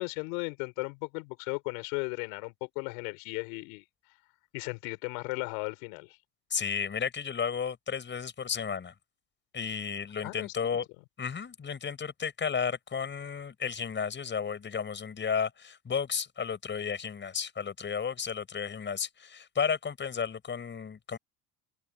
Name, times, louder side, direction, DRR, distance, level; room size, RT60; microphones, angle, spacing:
voice 1, 0.0-3.8 4.5-6.2 10.2-10.8, left 34 dB, 80° left, 5.8 m, -36 dB
voice 2, 6.5-8.9 9.5-10.9 11.2-21.2, left 6 dB, 30° left, 6.5 m, -33 dB
open air
supercardioid pair, 100°, 39 cm